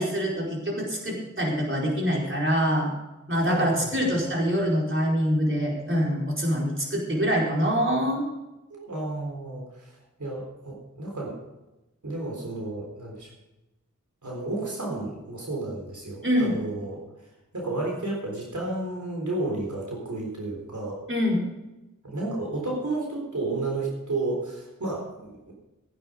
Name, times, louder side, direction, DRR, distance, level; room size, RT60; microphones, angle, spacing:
voice 1, 0.0-2.9 3.3-8.3 16.2-16.6 21.1-21.4, equal, 40° right, -2 dB, 4.7 m, -25 dB
voice 2, 3.3-4.1 8.7-9.9 10.2-11.3 12.0-13.3 14.2-17.0 17.5-21.0 22.0-25.5, right 2 dB, 70° right, -1 dB, 3.9 m, -32 dB
15.0 x 10.0 x 5.2 m, 1.0 s
wide cardioid pair, 40°, 31 cm